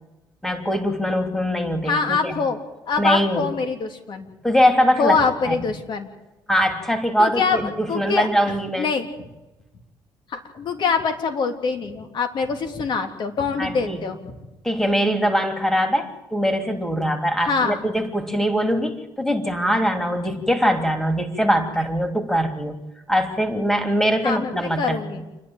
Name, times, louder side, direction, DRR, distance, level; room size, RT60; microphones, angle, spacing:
voice 1, 0.4-2.4 3.0-3.5 4.4-5.2 5.5-5.6 6.5-8.9 13.6-14.0 14.6-22.7 23.1-25.0, equal, 5° left, 6 dB, 3.2 m, -22 dB
voice 2, 1.8-2.6 2.9-4.3 5.0-6.1 7.2-7.6 7.9-9.1 10.3-14.3 17.4-17.8 24.2-24.5 24.8-25.2, left 5 dB, 60° left, 5 dB, 3.3 m, -24 dB
28.5 x 11.0 x 9.1 m, 1.0 s
cardioid pair, 85°, 9 cm